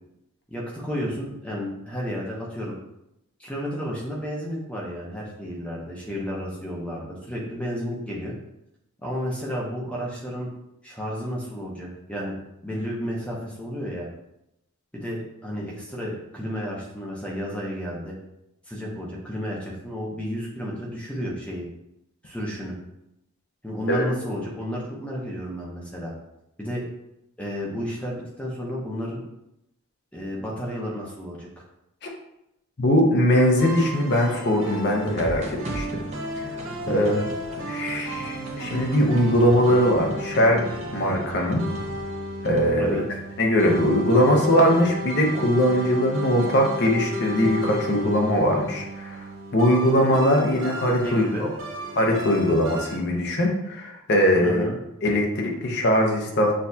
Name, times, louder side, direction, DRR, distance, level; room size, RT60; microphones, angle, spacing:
voice 1, 0.5-2.8 3.4-8.3 9.0-10.5 10.8-12.4 12.6-14.1 14.9-18.1 18.7-21.7 22.2-22.7 23.6-26.1 26.6-26.8 27.4-29.2 30.1-31.5 36.9-37.2 42.8-43.0 51.0-51.5 54.4-54.8, equal, 5° left, -4 dB, 0.7 m, -32 dB
voice 2, 32.8-36.0 36.4-36.5 36.9-37.2 37.7-40.6 40.9-41.6 42.4-43.0 43.4-49.2 49.5-51.2 52.0-54.6 55.0-56.5, equal, 50° left, 1 dB, 0.7 m, -21 dB
sound 1, 33.3-53.0, equal, 75° right, 0.9 m, -34 dB
sound 2, 35.0-42.0 42.4-42.7, right 1 dB, 30° right, 0.6 m, -38 dB
6.3 x 2.4 x 2.7 m, 0.85 s
head